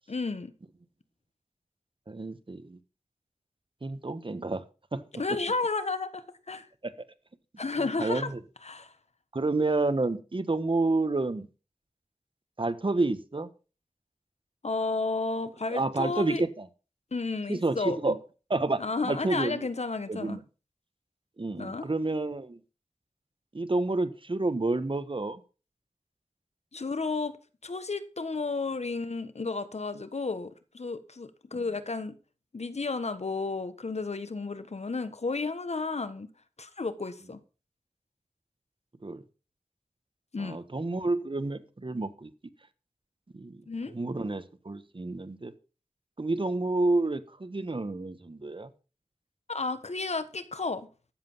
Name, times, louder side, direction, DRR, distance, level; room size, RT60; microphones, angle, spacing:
voice 1, 0.1-0.5 5.2-6.7 7.6-8.3 8.6-8.9 14.6-16.4 17.1-18.0 18.8-20.4 21.6-21.8 26.7-27.4 27.6-32.1 32.5-36.3 36.6-37.4 40.3-40.6 43.7-43.9 49.5-50.9, left 3 dB, 65° left, 1.4 m, -32 dB
voice 2, 2.1-2.8 3.8-4.6 4.9-5.0 6.8-6.9 8.0-8.4 9.3-11.5 12.6-13.5 15.7-16.7 17.5-18.2 18.5-19.7 20.1-20.4 21.4-22.6 23.5-25.4 31.5-31.6 39.0-39.2 40.4-42.3 43.3-45.5 46.2-48.7, right 2 dB, 45° right, 1.4 m, -29 dB
13.5 x 7.8 x 5.6 m
wide cardioid pair, 50°, 12 cm